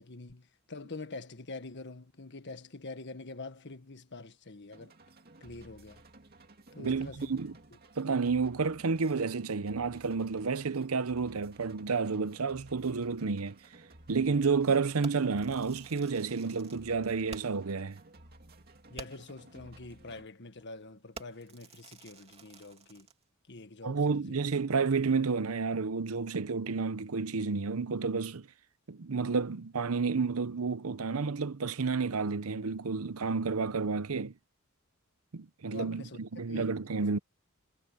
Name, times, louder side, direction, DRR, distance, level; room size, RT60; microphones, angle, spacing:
voice 1, 0.0-4.9 5.4-6.0 6.7-7.4 18.9-23.1 23.5-24.4 35.7-36.2 36.5-36.7, left 3 dB, 55° left, 1.6 m, -45 dB
sound 1, 4.7-20.3, right 2 dB, 45° right, 2.5 m, -56 dB
voice 2, 6.8-7.5 8.0-13.6 14.1-18.0 23.8-28.5 28.9-34.3 35.3-37.2, right 4 dB, 85° right, 0.8 m, -30 dB
Fireworks, 15.0-17.7 18.1-18.2 18.5-18.6 19.0-19.4 20.0-20.2 20.6-20.8 21.2-23.2, right 4 dB, 30° right, 2.7 m, -50 dB
head